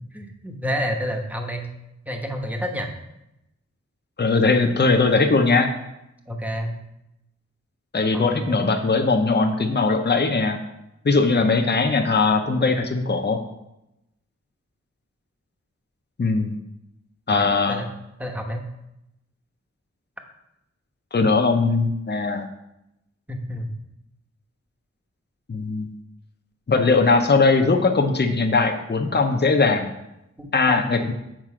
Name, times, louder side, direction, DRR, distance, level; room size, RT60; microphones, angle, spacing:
voice 1, 0.1-1.7 2.1-2.9 6.3-6.7 8.1-8.7 17.3-17.9 18.2-18.7 23.3-23.7 30.4-31.1, equal, 5° right, 3 dB, 1.1 m, -29 dB
voice 2, 4.2-5.7 7.9-10.6 11.0-13.4 16.2-16.6 17.3-17.8 21.1-22.5 25.5-25.9 26.7-29.9 30.5-31.1, left 3 dB, 35° left, 4 dB, 0.8 m, -20 dB
7.5 x 5.3 x 4.9 m, 0.88 s
wide cardioid pair, 85°, 29 cm